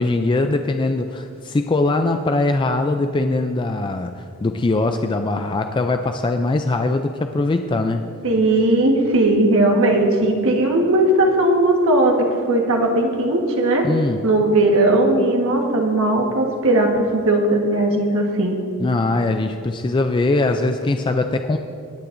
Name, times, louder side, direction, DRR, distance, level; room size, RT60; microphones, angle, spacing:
voice 1, 0.0-8.1 13.8-14.2 18.8-21.6, left 2 dB, 20° left, 6 dB, 0.3 m, -21 dB
voice 2, 8.2-13.9 14.2-18.6, right 1 dB, 65° right, 1 dB, 1.4 m, -18 dB
20.0 x 9.8 x 2.6 m, 2.3 s
head